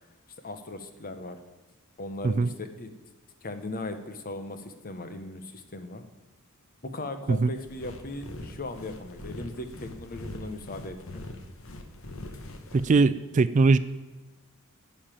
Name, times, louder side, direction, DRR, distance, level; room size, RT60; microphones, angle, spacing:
voice 1, 0.4-1.4 2.0-2.9 3.4-6.0 6.9-11.2, left 2 dB, 40° left, 8 dB, 1.0 m, -38 dB
sound 1, 7.5-12.9, left 1 dB, 65° left, 1.1 m, -42 dB
voice 2, 12.7-13.8, right 3 dB, 35° right, 14 dB, 0.3 m, -21 dB
11.5 x 5.7 x 8.9 m, 1.2 s
head